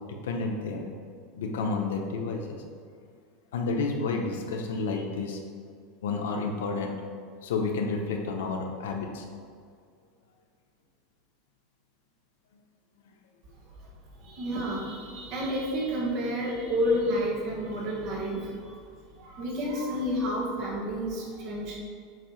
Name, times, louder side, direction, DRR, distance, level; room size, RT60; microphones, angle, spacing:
voice 1, 0.1-0.9 1.4-2.6 3.5-5.4 6.0-7.0 7.4-9.3, left 4 dB, 90° left, 2 dB, 0.9 m, -30 dB
voice 2, 14.2-18.8 19.2-21.8, equal, 45° right, -3 dB, 1.7 m, -30 dB
7.7 x 2.8 x 5.8 m, 2.1 s
supercardioid pair, 140°, 0 cm